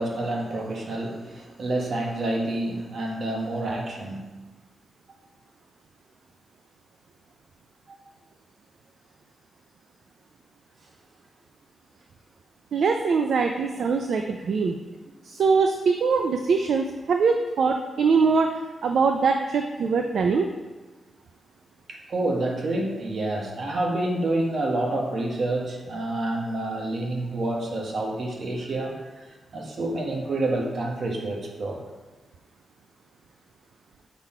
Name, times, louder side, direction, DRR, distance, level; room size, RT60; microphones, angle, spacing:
voice 1, 0.0-4.4 21.9-31.8, right 2 dB, 65° right, 0 dB, 1.2 m, -28 dB
voice 2, 12.7-14.8 15.2-18.5 18.8-20.5, right 5 dB, 80° right, 4 dB, 0.4 m, -22 dB
5.9 x 4.1 x 4.3 m, 1.2 s
cardioid pair, 80°, 0 cm